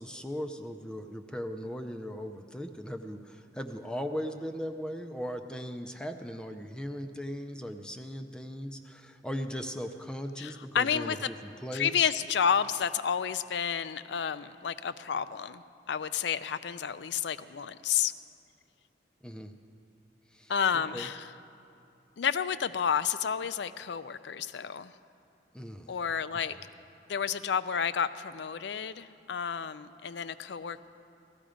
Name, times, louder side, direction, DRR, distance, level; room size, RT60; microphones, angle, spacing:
voice 1, 0.0-12.1 19.2-19.5 20.3-20.5 20.9-21.1 25.5-26.0 26.5-26.6, equal, 5° left, 6 dB, 0.5 m, -38 dB
voice 2, 10.4-11.3 11.7-15.6 15.9-18.1 20.5-21.3 22.2-24.9 25.9-26.6 27.1-30.9, left 7 dB, 70° left, 14 dB, 0.4 m, -30 dB
15.0 x 13.5 x 5.0 m, 2.7 s
head